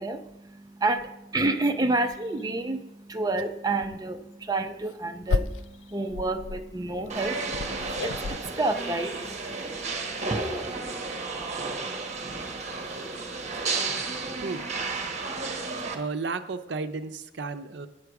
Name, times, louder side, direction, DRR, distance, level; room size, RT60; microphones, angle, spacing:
voice 1, 0.0-9.1 10.3-10.4, right 2 dB, 20° right, 7 dB, 0.6 m, -29 dB
sound 1, 1.0-1.1 1.6-1.7 2.1-2.5 3.3-3.5 3.8-4.0 4.6-8.4, left 4 dB, 85° left, 0.3 m, -33 dB
sound 2, 7.1-15.9, right 3 dB, 40° right, 1.1 m, -32 dB
voice 2, 15.9-17.9, right 4 dB, 70° right, 9 dB, 0.6 m, -33 dB
8.6 x 4.8 x 7.0 m, 0.86 s
head